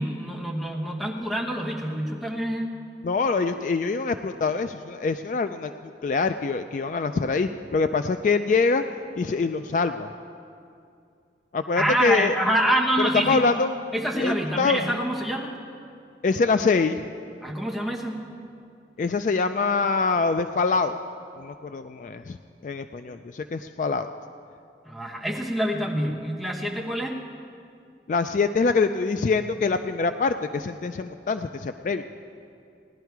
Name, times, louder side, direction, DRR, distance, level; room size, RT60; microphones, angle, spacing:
voice 1, 0.0-2.7 11.8-13.4 13.9-15.6 17.4-18.2 24.8-27.2, right 1 dB, ahead, -2 dB, 1.1 m, -26 dB
voice 2, 3.0-5.7 6.0-8.8 9.2-10.1 11.5-12.3 13.1-13.7 14.2-14.8 16.2-17.0 19.0-21.0 21.4-22.4 22.6-24.1 28.1-32.0, left 4 dB, 45° left, 9 dB, 0.3 m, -24 dB
17.0 x 11.0 x 4.6 m, 2.4 s
head